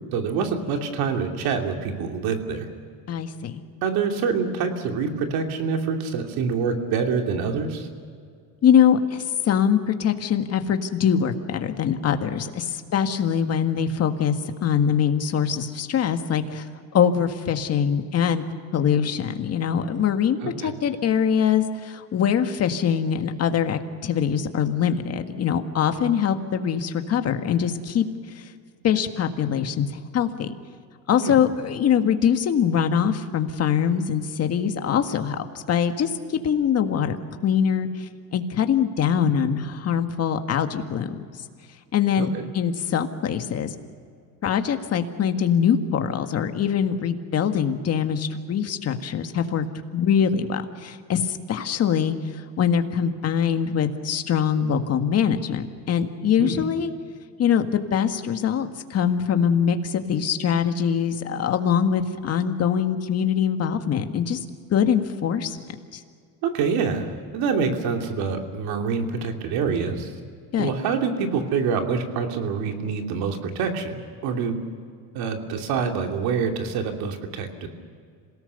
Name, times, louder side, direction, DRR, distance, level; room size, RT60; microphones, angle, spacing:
voice 1, 0.1-2.7 3.8-7.9 20.4-20.7 31.2-31.3 42.2-42.4 56.4-56.6 66.4-70.1 70.6-74.0 74.2-74.6 75.1-77.7, right 5 dB, 70° right, 3 dB, 3.0 m, -26 dB
voice 2, 3.1-3.6 8.6-16.7 16.9-18.4 18.7-28.0 28.8-29.9 30.1-30.5 31.1-37.2 37.4-41.2 41.9-43.8 44.4-49.7 49.9-52.2 52.6-56.9 57.4-64.4 64.7-65.6 65.9-66.0 70.5-70.7, left 8 dB, 40° left, 7 dB, 1.7 m, -23 dB
27.0 x 18.0 x 6.9 m, 2.2 s
cardioid pair, 125°, 38 cm